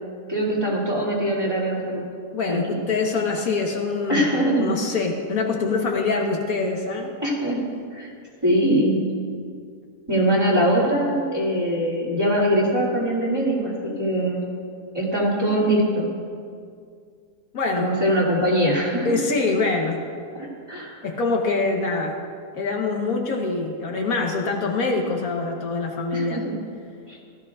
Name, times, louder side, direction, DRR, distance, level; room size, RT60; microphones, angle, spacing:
voice 1, 0.3-2.0 2.5-2.8 4.1-4.7 7.2-8.1 8.4-9.1 10.1-14.4 14.9-16.1 17.8-19.2 20.3-21.0 26.1-26.4 27.1-27.2, equal, 15° right, -5 dB, 2.4 m, -22 dB
voice 2, 2.3-7.2 17.5-17.9 19.0-20.0 21.0-22.2 22.5-26.4, left 3 dB, 75° left, 2 dB, 1.6 m, -24 dB
16.5 x 13.0 x 2.4 m, 2.2 s
omnidirectional pair, 1.5 m